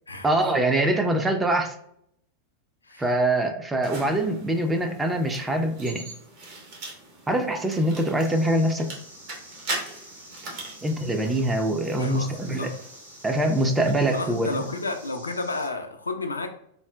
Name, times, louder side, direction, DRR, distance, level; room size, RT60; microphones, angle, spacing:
voice 1, 0.2-1.7 3.0-6.0 7.3-8.9 10.8-12.7 13.2-14.6, right 1 dB, 10° right, 4 dB, 0.4 m, -24 dB
sound 1, 3.8-15.1, right 2 dB, 45° right, 0.8 m, -41 dB
sound 2, 8.2-15.7, right 1 dB, 80° right, 0.6 m, -48 dB
voice 2, 12.0-12.3 12.6-12.8 14.1-16.5, left 3 dB, 80° left, 6 dB, 0.3 m, -31 dB
3.7 x 2.0 x 2.2 m, 0.72 s
figure-of-eight pair, 90°, 0 cm